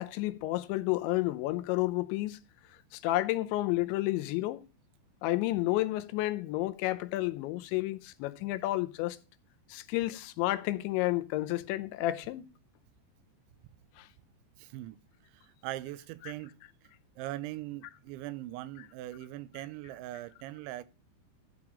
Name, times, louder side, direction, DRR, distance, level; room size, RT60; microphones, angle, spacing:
voice 1, 0.0-2.4 2.9-4.6 5.2-9.2 9.7-12.4 16.2-16.3, left 17 dB, 90° left, 3.1 m, -31 dB
voice 2, 14.6-15.0 15.3-16.5 17.2-20.8, right 15 dB, 85° right, 3.1 m, -41 dB
13.5 x 4.8 x 7.3 m
omnidirectional pair, 5.2 m